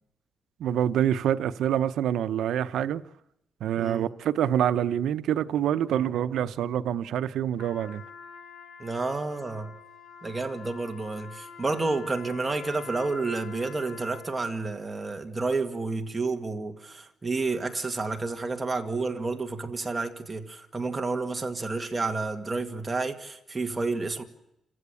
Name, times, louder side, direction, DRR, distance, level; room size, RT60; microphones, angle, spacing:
voice 1, 0.6-3.0 3.6-8.0, right 10 dB, 90° right, 0.8 m, -26 dB
voice 2, 3.8-4.1 8.8-9.7 10.2-24.2, right 3 dB, 20° right, 2.0 m, -30 dB
Trumpet, 7.5-14.6, left 6 dB, 75° left, 4.4 m, -46 dB
28.5 x 15.5 x 8.4 m
cardioid pair, 130°, 0 cm